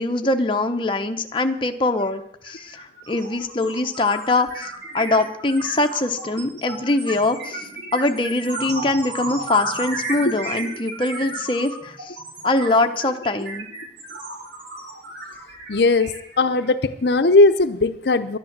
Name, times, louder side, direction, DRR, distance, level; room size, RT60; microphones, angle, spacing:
voice 1, 0.0-12.2 12.4-13.7, left 2 dB, 25° left, 5 dB, 0.8 m, -23 dB
sound 1, 2.0-2.1 2.4-16.8, right 2 dB, 80° right, 5.7 m, -33 dB
voice 2, 15.7-18.4, left 2 dB, 65° left, 10 dB, 0.7 m, -18 dB
11.5 x 10.5 x 7.3 m, 0.73 s
head